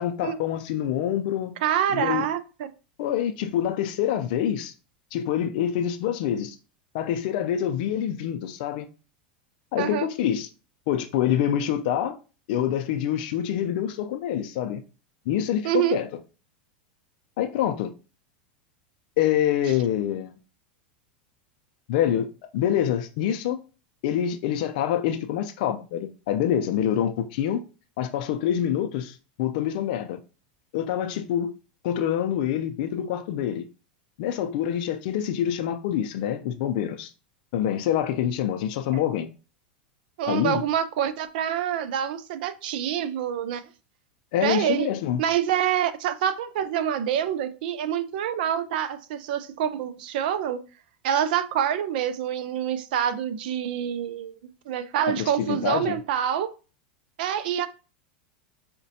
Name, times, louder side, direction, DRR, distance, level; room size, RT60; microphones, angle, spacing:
voice 1, 0.0-1.5 1.9-2.3 3.0-4.7 5.1-6.6 6.9-8.9 9.7-10.5 10.9-12.2 12.5-14.8 15.3-16.1 17.4-17.9 19.2-20.3 21.9-22.3 22.5-23.6 24.0-27.6 28.0-30.2 30.7-31.5 31.8-33.7 34.2-37.1 37.5-39.3 40.3-40.6 44.3-45.2 55.1-56.0, left 10 dB, 65° left, 0.4 m, -26 dB
voice 2, 1.6-2.7 9.8-10.1 15.6-16.0 38.9-39.0 40.2-43.6 44.4-44.9 45.2-50.6 51.0-54.4 54.7-56.5 57.2-57.7, right 9 dB, 70° right, 0.4 m, -26 dB
4.9 x 2.2 x 2.7 m
hypercardioid pair, 115°, 5 cm